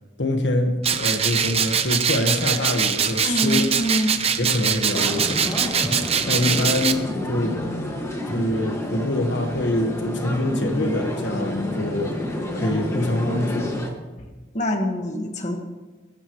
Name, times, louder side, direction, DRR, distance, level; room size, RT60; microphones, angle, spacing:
voice 1, 0.2-3.7 4.4-5.4 6.2-7.7 8.2-13.7, left 1 dB, 65° left, 3 dB, 1.4 m, -25 dB
sound 1, 0.8-6.9, right 7 dB, 30° right, 0.8 m, -23 dB
voice 2, 3.2-4.2 14.2-14.3 14.5-15.6, equal, 35° left, 3 dB, 1.7 m, -25 dB
sound 2, 4.9-13.9, left 1 dB, 15° left, 1.8 m, -29 dB
22.5 x 13.0 x 3.1 m, 1.3 s
head